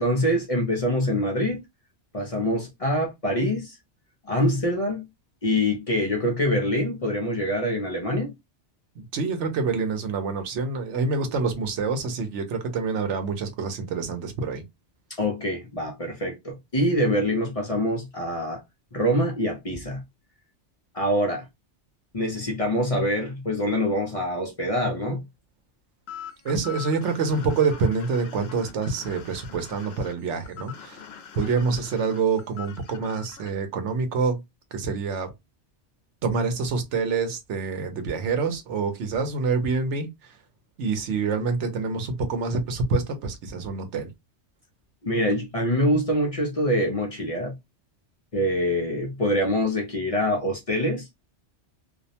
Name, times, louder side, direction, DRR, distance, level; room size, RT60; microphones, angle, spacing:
voice 1, 0.0-1.6 2.1-3.8 4.3-5.1 5.4-8.3 15.2-18.6 18.9-20.0 20.9-21.4 22.1-25.2 45.0-47.5 48.3-51.1, equal, 40° left, 0.6 m, -25 dB
voice 2, 9.0-14.6 26.4-31.0 31.3-34.4 34.7-35.3 36.2-40.3 40.8-44.1, right 4 dB, 85° right, 1.0 m, -26 dB
sound 1, 26.1-33.5, left 8 dB, 70° left, 0.8 m, -43 dB
2.5 x 2.1 x 2.7 m
omnidirectional pair, 1.2 m